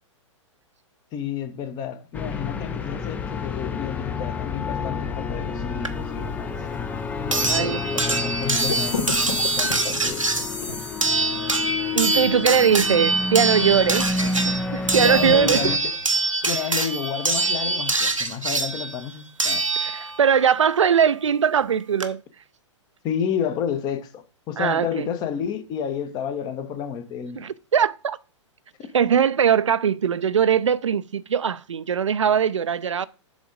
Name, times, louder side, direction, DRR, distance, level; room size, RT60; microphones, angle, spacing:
voice 1, 1.1-6.6 7.2-10.4 15.0-16.0 16.4-19.6 23.0-27.5, left 8 dB, 25° left, 0.8 m, -30 dB
sound 1, 2.1-15.8, left 4 dB, 10° left, 0.4 m, -30 dB
sound 2, 5.8-5.9 7.3-20.3 21.6-21.7 22.0-22.1, right 3 dB, 90° right, 0.8 m, -24 dB
voice 2, 7.5-7.8 11.9-15.7 19.8-22.2 24.6-25.1 27.4-28.2 28.9-33.1, right 7 dB, 70° right, 0.5 m, -21 dB
sound 3, 8.5-11.3, left 4 dB, 70° left, 1.6 m, -31 dB
7.3 x 3.6 x 4.9 m
figure-of-eight pair, 110°, 16 cm